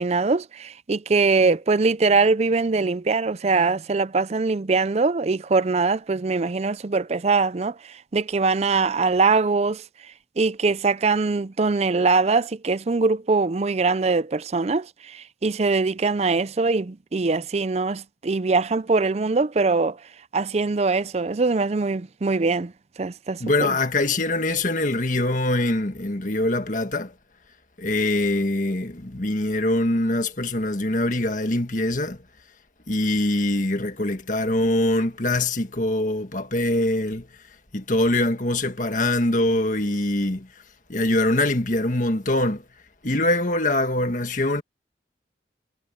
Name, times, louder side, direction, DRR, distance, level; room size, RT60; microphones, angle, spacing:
voice 1, 0.0-9.8 10.4-20.0 20.3-22.7 23.0-23.4, right 4 dB, 35° right, 0.5 m, -22 dB
voice 2, 23.4-27.1 27.8-32.2 32.9-37.3 37.7-40.5 40.9-42.7 43.0-44.6, left 1 dB, 45° left, 1.7 m, -23 dB
head